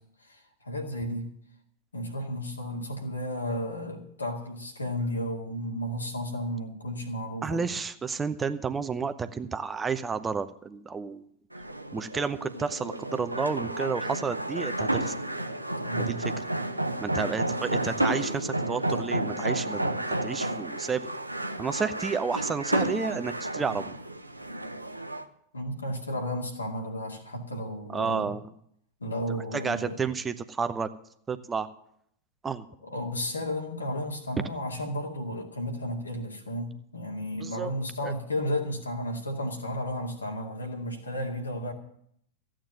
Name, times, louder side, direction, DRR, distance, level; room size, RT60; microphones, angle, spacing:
voice 1, 0.2-1.3 1.9-7.6 15.8-16.2 25.5-28.3 29.0-30.0 32.8-41.7, equal, 80° left, 2 dB, 2.3 m, -33 dB
voice 2, 7.4-11.2 11.9-15.1 16.0-16.3 17.0-21.1 21.6-23.9 27.9-28.4 29.5-30.9 31.3-31.7 32.4-32.6 37.4-37.7 38.0-38.1, right 5 dB, 15° right, 11 dB, 0.8 m, -31 dB
sound 1, 11.5-25.2, right 1 dB, 85° right, 0.8 m, -31 dB
14.5 x 8.9 x 7.6 m, 0.69 s
figure-of-eight pair, 90°, 0 cm